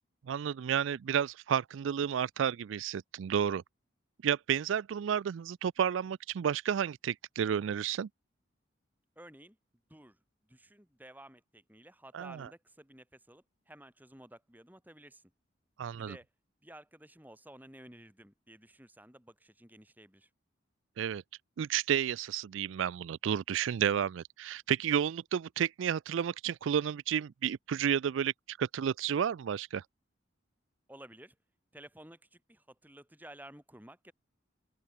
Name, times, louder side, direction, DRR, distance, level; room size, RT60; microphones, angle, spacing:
voice 1, 0.3-3.6 4.2-8.1 12.1-12.5 15.8-16.2 21.0-21.2 21.6-29.8, right 8 dB, 75° right, 0.3 m, -31 dB
voice 2, 9.2-9.6 9.9-10.2 10.5-15.2 16.0-16.3 16.6-20.3 30.9-31.3 31.7-34.1, right 1 dB, 10° right, 4.5 m, -53 dB
open air
head